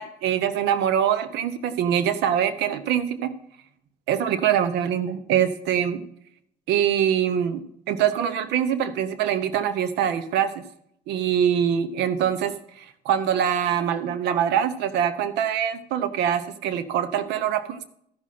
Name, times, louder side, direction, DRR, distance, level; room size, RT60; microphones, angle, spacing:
voice 1, 0.0-3.3 4.1-6.0 6.7-10.6 11.1-12.5 13.0-17.8, right 9 dB, 85° right, 11 dB, 0.9 m, -24 dB
14.5 x 6.2 x 4.2 m, 0.69 s
cardioid pair, 110°, 17 cm